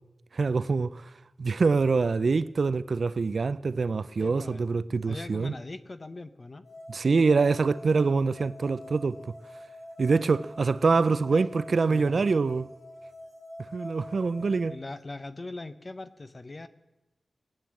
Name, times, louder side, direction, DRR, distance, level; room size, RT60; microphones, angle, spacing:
voice 1, 0.3-1.1 1.4-5.5 6.9-9.2 10.0-12.7 13.7-14.7, right 4 dB, 55° right, 0.4 m, -25 dB
voice 2, 4.2-4.6 5.1-6.6 11.3-11.5 11.9-12.2 14.4-16.7, left 2 dB, 30° left, 0.7 m, -41 dB
sound 1, 6.6-14.7, left 1 dB, 55° left, 6.4 m, -46 dB
19.5 x 8.8 x 7.5 m
wide cardioid pair, 140°, 0 cm